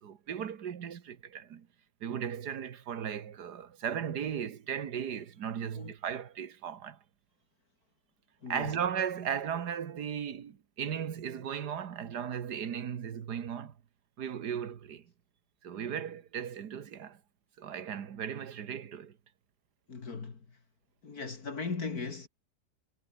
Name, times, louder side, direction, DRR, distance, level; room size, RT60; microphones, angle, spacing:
voice 1, 0.0-1.7 2.0-7.0 8.5-13.7 14.2-15.0 15.6-17.2 17.6-19.1, right 8 dB, 75° right, 1.9 m, -36 dB
voice 2, 8.4-8.7 19.9-20.5 21.0-22.3, left 4 dB, 60° left, 3.0 m, -38 dB
omnidirectional pair, 1.8 m